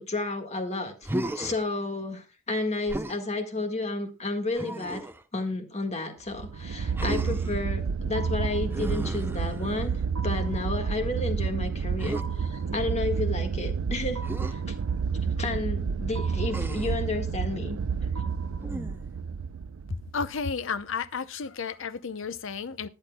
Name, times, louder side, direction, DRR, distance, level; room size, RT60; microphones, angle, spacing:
voice 1, 0.0-5.0 5.3-14.2 14.5-14.7 15.4-17.8, left 2 dB, 30° left, 1.6 m, -32 dB
Human voice, 1.0-1.7 2.9-3.2 4.6-5.2 7.0-7.6 8.7-9.9 12.0-12.3 14.2-14.5 16.5-17.0 18.6-19.1, right 1 dB, 10° right, 0.6 m, -34 dB
sound 1, 6.3-20.5, right 6 dB, 90° right, 0.5 m, -30 dB
voice 2, 20.1-22.9, left 5 dB, 65° left, 0.7 m, -32 dB
19.5 x 10.0 x 2.2 m
head